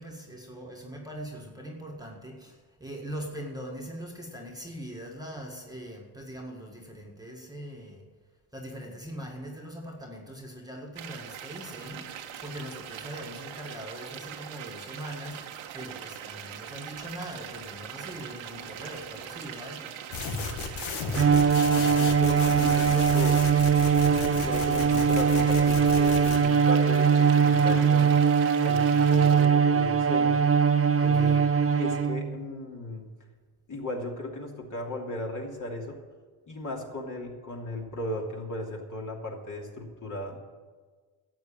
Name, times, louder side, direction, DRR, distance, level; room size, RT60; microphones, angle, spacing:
voice 1, 0.0-8.1 8.5-20.0 31.0-31.4, equal, 10° right, 0 dB, 1.8 m, -41 dB
sound 1, 11.0-29.5, right 9 dB, 70° right, 1.4 m, -42 dB
sound 2, 20.1-26.4, left 5 dB, 75° left, 1.8 m, -35 dB
voice 2, 21.1-23.4 24.0-28.1 28.6-30.5 31.0-33.1 33.7-36.0 36.5-40.4, left 1 dB, 35° left, 0 dB, 2.9 m, -36 dB
Bowed string instrument, 21.1-32.4, right 6 dB, 30° right, 0.8 m, -22 dB
12.0 x 8.0 x 8.8 m, 1.5 s
cardioid pair, 95°, 49 cm